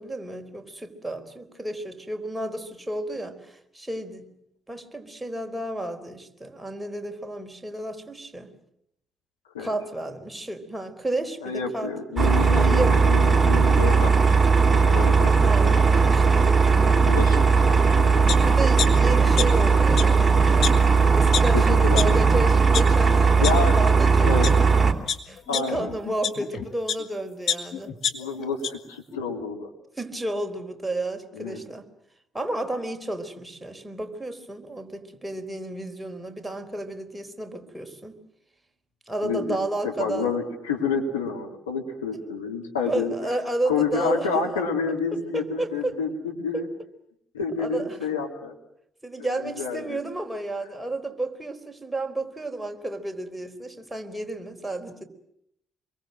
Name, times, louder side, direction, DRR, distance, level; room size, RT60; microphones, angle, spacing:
voice 1, 0.0-4.3 4.7-8.5 9.6-11.9 12.5-13.2 15.4-16.5 17.3-17.4 18.4-20.7 21.2-24.3 25.3-27.9 30.0-31.9 32.3-38.2 39.1-40.3 42.1-42.2 42.8-44.6 45.3-46.0 46.5-46.7 47.6-48.0 49.0-55.0, right 1 dB, 10° right, 4.3 m, -32 dB
voice 2, 11.4-14.3 14.7-15.3 15.6-16.2 16.6-18.2 21.5-22.2 23.4-23.8 24.2-24.5 25.5-25.9 28.1-29.7 31.3-31.6 39.2-39.6 39.8-43.1 43.7-46.7 47.3-48.5 49.2-50.0, left 5 dB, 85° left, 3.0 m, -29 dB
sound 1, 12.2-24.9, right 5 dB, 25° right, 3.1 m, -18 dB
sound 2, 18.3-18.4 18.8-19.7 19.9-20.0 20.6-20.7 21.3-21.4 22.0-22.1 22.5-22.8 23.4-23.5 24.2-24.5 25.1-27.0 27.5-28.7 29.1-29.2, left 8 dB, 55° left, 2.2 m, -27 dB
26.0 x 23.0 x 7.7 m
hypercardioid pair, 50°, 0 cm